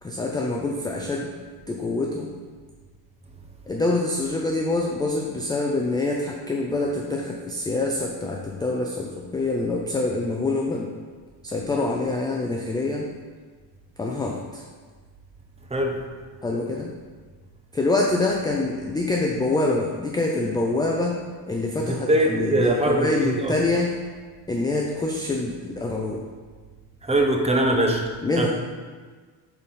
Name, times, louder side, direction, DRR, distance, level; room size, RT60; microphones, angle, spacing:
voice 1, 0.0-1.4 1.7-2.3 3.7-10.9 11.4-13.1 14.0-14.6 16.4-16.9 17.7-21.1 21.5-23.9 24.5-26.2 28.2-28.5, left 2 dB, 10° left, -1 dB, 0.4 m, -25 dB
voice 2, 21.8-23.5 27.0-28.0 28.4-28.5, right 1 dB, 15° right, 2 dB, 0.8 m, -22 dB
7.9 x 4.2 x 5.7 m, 1.5 s
cardioid pair, 145°, 47 cm